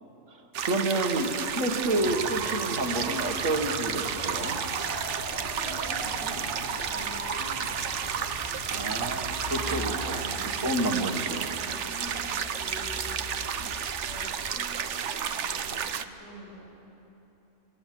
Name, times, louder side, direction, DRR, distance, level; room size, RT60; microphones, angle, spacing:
voice 1, 0.3-4.6 8.7-10.3 10.6-11.4 13.6-13.7, right 1 dB, 85° right, 2 dB, 2.1 m, -29 dB
sound 1, 0.5-16.0, right 7 dB, 70° right, 1.1 m, -32 dB
sound 2, 2.0-10.2, right 1 dB, 50° right, 4.1 m, -39 dB
sound 3, 4.8-14.5, left 3 dB, 35° left, 1.2 m, -46 dB
voice 2, 5.4-8.0 8.8-9.1 9.6-13.1 14.0-16.8, equal, 55° left, -6 dB, 8.1 m, -46 dB
25.0 x 21.5 x 7.6 m, 2.9 s
omnidirectional pair, 1.3 m